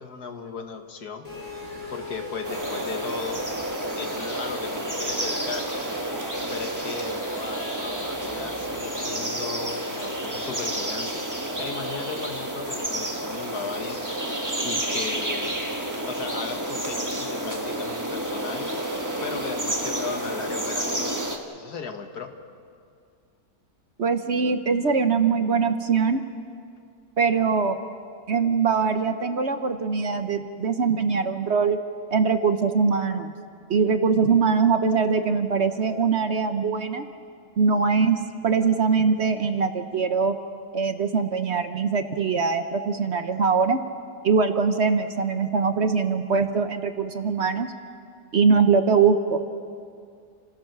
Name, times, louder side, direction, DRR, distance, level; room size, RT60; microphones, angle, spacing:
voice 1, 0.0-1.3 1.9-3.5 3.9-5.7 6.5-14.0 14.6-15.6 16.1-18.7 19.2-21.2 21.5-22.3, left 5 dB, 75° left, 5 dB, 2.0 m, -36 dB
sound 1, 1.2-9.7, left 2 dB, 60° left, 7.3 m, -41 dB
sound 2, 2.4-21.4, right 1 dB, 10° right, 1.4 m, -30 dB
voice 2, 24.0-26.2 27.2-27.8 28.3-31.8 32.1-33.3 33.7-37.0 37.6-38.2 38.4-40.4 40.7-43.8 44.2-47.7 48.3-49.4, right 5 dB, 50° right, 8 dB, 1.0 m, -22 dB
29.0 x 16.5 x 6.7 m, 2.3 s
omnidirectional pair, 1.7 m